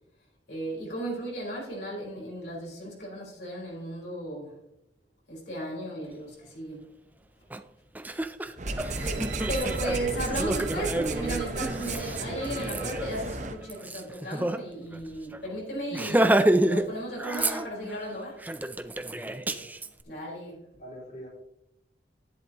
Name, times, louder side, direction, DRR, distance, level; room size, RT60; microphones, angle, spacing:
voice 1, 0.5-4.6 5.3-6.8 9.0-18.5 20.0-20.7, right 1 dB, 70° left, 4.5 m, -35 dB
Laughter, 7.5-7.6 8.0-14.6 14.9-15.0 15.3-15.5 15.9-16.9 17.2-18.0 18.4-19.9, right 1 dB, 10° right, 0.5 m, -29 dB
sound 1, 8.6-13.6, right 2 dB, 40° right, 0.9 m, -33 dB
voice 2, 8.8-9.4 19.2-19.9 20.7-21.3, equal, 40° left, 4.1 m, -47 dB
sound 2, 8.9-13.9 14.4-14.5, right 8 dB, 85° right, 1.2 m, -45 dB
11.5 x 11.0 x 3.0 m
head